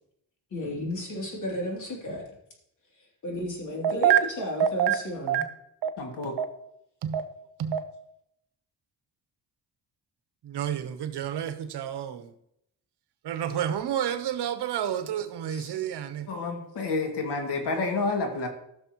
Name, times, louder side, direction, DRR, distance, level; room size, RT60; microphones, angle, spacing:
voice 1, 0.5-2.4 3.0-5.4 15.5-15.8, equal, 45° left, 3.1 m, -33 dB
voice 2, 6.0-6.3 16.3-18.5, left 3 dB, 75° left, 2.3 m, -29 dB
voice 3, 10.5-12.3 13.2-16.3, right 10 dB, 75° right, 1.1 m, -28 dB
15.5 x 6.5 x 3.0 m
wide cardioid pair, 165°, 40 cm